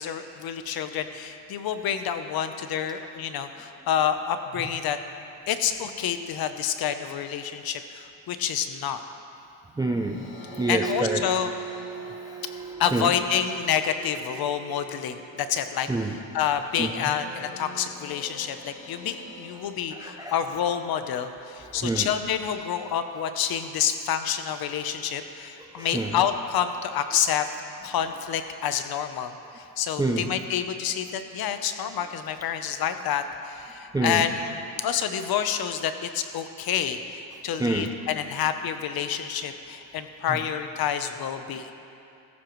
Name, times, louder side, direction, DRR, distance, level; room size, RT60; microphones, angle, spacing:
voice 1, 0.0-5.0 5.5-9.0 10.7-11.5 12.8-15.9 16.3-27.5 27.8-41.7, left 8 dB, 50° left, 9 dB, 0.8 m, -28 dB
voice 2, 9.8-10.3 10.6-11.2 11.9-12.4 12.7-13.1 15.9-16.2 16.8-16.9 19.9-20.3 21.6-22.1 25.6-26.2 30.0-30.3 33.9-34.2 37.6-37.9 40.3-40.4, right 2 dB, 10° right, 3 dB, 0.4 m, -28 dB
sound 1, 9.9-21.3, right 5 dB, 85° left, 1.9 m, -41 dB
15.0 x 14.0 x 3.1 m, 2.6 s
cardioid pair, 135°, 46 cm